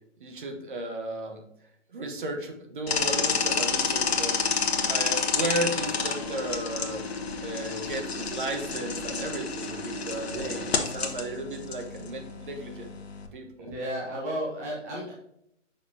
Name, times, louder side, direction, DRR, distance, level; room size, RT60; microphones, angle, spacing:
voice 1, 0.2-1.4 1.9-4.4 4.8-7.0 7.4-12.9 13.3-13.7, right 2 dB, 40° right, 4 dB, 1.1 m, -34 dB
sound 1, 2.9-13.3, left 5 dB, 55° left, 1.0 m, -30 dB
voice 2, 10.3-10.7 13.6-15.1, equal, 15° right, -5 dB, 0.7 m, -34 dB
6.6 x 5.4 x 2.7 m, 0.76 s
figure-of-eight pair, 150°, 38 cm